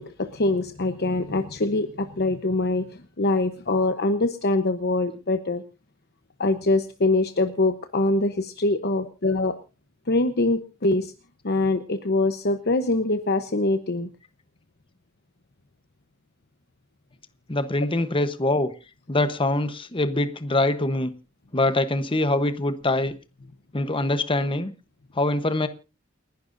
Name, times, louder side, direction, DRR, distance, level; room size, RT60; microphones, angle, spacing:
voice 1, 0.0-5.6 6.4-9.6 10.1-11.1 11.4-14.1, left 2 dB, 50° left, 8 dB, 1.0 m, -24 dB
voice 2, 17.5-18.7 19.1-21.1 21.5-23.1 23.7-24.7 25.2-25.7, left 2 dB, 25° left, 11 dB, 1.0 m, -24 dB
29.0 x 11.5 x 2.6 m, 0.31 s
head